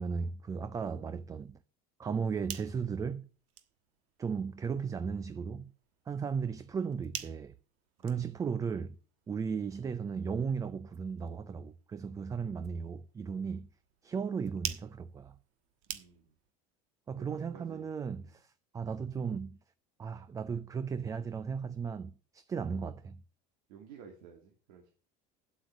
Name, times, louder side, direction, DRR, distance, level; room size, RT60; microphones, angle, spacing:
voice 1, 0.0-1.6 2.0-3.3 4.2-5.7 6.1-7.5 8.0-9.0 9.3-13.7 14.0-15.3 17.1-19.6 20.0-23.2, right 6 dB, 20° right, 0.5 m, -36 dB
sound 1, 2.3-16.5, right 12 dB, 70° right, 1.4 m, -49 dB
voice 2, 15.9-16.3 17.2-17.9 18.2-18.4 23.7-24.9, right 6 dB, 90° right, 2.6 m, -54 dB
9.4 x 8.2 x 6.1 m
cardioid pair, 145°, 18 cm